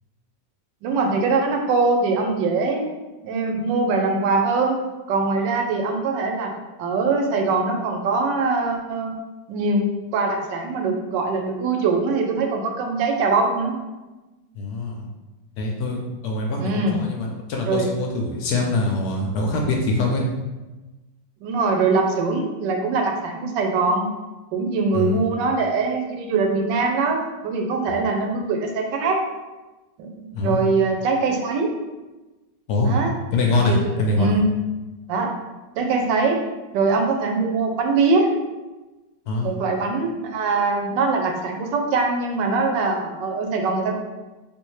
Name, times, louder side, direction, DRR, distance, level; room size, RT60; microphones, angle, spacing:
voice 1, 0.8-2.8 3.2-4.8 5.1-6.5 6.8-9.2 9.5-13.7 16.6-17.0 17.7-17.9 21.4-24.1 24.5-29.2 30.0-31.7 32.8-33.1 33.6-34.5 35.1-35.3 35.8-36.4 36.7-38.3 39.4-44.0, right 3 dB, 90° right, 3 dB, 1.3 m, -22 dB
voice 2, 14.5-15.1 15.6-20.2 24.9-25.2 30.3-30.7 32.7-33.0 33.3-34.4 39.3-39.5, left 2 dB, 70° left, 0 dB, 1.0 m, -23 dB
3.4 x 2.5 x 3.1 m, 1.1 s
omnidirectional pair, 1.9 m